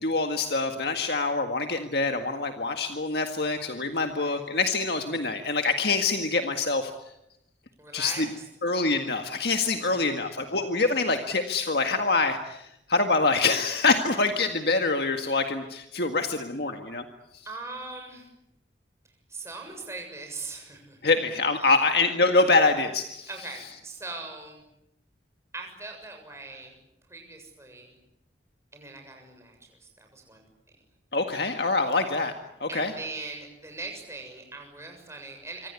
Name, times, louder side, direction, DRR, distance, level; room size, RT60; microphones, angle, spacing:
voice 1, 0.0-6.9 7.9-8.3 8.6-17.0 21.0-23.3 31.1-32.3 32.6-32.9, left 3 dB, 60° left, 5 dB, 1.8 m, -25 dB
voice 2, 4.0-4.4 7.8-8.5 9.8-10.6 17.5-18.3 19.3-21.0 21.6-21.8 23.3-24.6 25.5-26.8 27.1-27.9 28.7-30.4 32.7-35.7, right 3 dB, 15° right, 3 dB, 7.0 m, -41 dB
26.0 x 25.5 x 8.4 m, 0.82 s
head